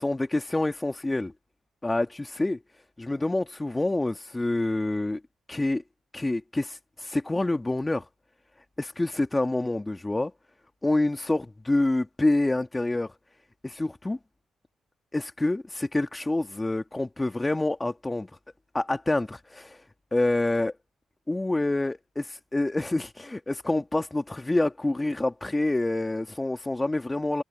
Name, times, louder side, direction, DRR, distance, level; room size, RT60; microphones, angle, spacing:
voice 1, 0.0-1.3 1.8-2.6 3.0-5.2 5.5-5.8 6.1-8.1 8.8-10.3 10.8-13.2 13.6-14.2 15.1-18.3 18.7-19.8 20.1-20.7 21.3-27.4, left 2 dB, 20° left, 2.0 m, -27 dB
supercardioid pair, 60°, 0 cm